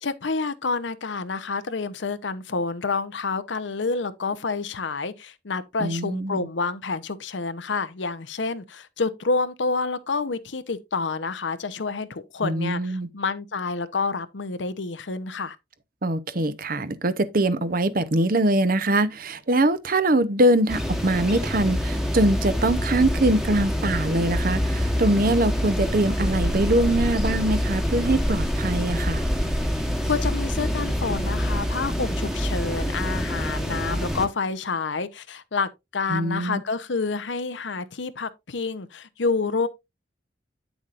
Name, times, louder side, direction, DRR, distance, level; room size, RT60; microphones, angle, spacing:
voice 1, 0.0-15.6 30.1-39.7, left 4 dB, 85° left, 0.8 m, -28 dB
voice 2, 5.8-6.4 12.4-13.1 16.0-29.2 36.1-36.6, right 1 dB, 50° right, 0.8 m, -23 dB
sound 1, 20.7-34.3, equal, ahead, 1.2 m, -26 dB
9.1 x 7.1 x 2.5 m
head